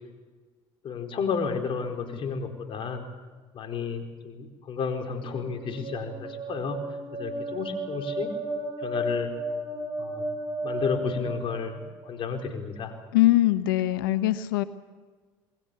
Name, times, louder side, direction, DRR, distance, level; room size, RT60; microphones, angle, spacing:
voice 1, 0.8-3.1 3.5-6.8 7.1-8.3 8.8-9.3 10.0-10.3 10.6-12.9, left 5 dB, 50° left, 5 dB, 4.5 m, -32 dB
sound 1, 5.2-12.0, right 1 dB, 45° right, 7.2 m, -34 dB
voice 2, 13.1-14.6, left 16 dB, 85° left, 12 dB, 1.1 m, -22 dB
27.5 x 21.5 x 7.0 m, 1.4 s
hypercardioid pair, 75°, 11 cm